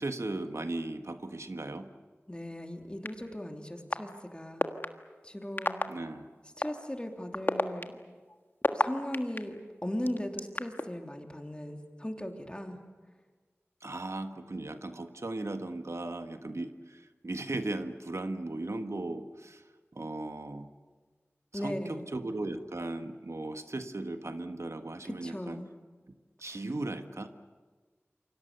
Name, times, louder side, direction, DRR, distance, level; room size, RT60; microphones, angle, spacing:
voice 1, 0.0-1.9 5.9-6.3 13.8-19.6 19.9-20.7 21.5-25.6 26.4-27.3, right 2 dB, 75° right, 7 dB, 1.5 m, -37 dB
voice 2, 2.3-4.6 5.2-5.8 6.6-7.9 8.7-12.8 21.5-22.1 25.0-25.7 26.5-26.6, left 1 dB, 20° left, 3 dB, 3.2 m, -38 dB
sound 1, 3.0-3.1 3.9-4.0 4.6-4.9 5.6-5.8 6.6-6.7 7.3-9.4 10.1-10.8, left 2 dB, 45° left, 1.5 m, -27 dB
28.5 x 24.5 x 6.9 m, 1.4 s
wide cardioid pair, 50°, 5 cm